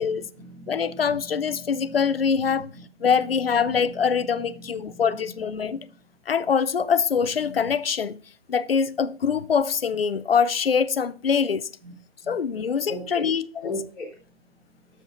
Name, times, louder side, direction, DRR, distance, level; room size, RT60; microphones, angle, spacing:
voice 1, 0.0-3.1 3.6-5.2 5.6-5.8 11.8-11.9 12.2-12.3 12.9-13.2 13.6-14.1, left 1 dB, 5° left, 1.3 m, -40 dB
voice 2, 0.7-2.7 3.0-5.8 6.3-8.2 8.5-11.7 12.3-13.7, left 6 dB, 55° left, 0.6 m, -24 dB
10.5 x 7.4 x 2.5 m
hypercardioid pair, 175°, 35 cm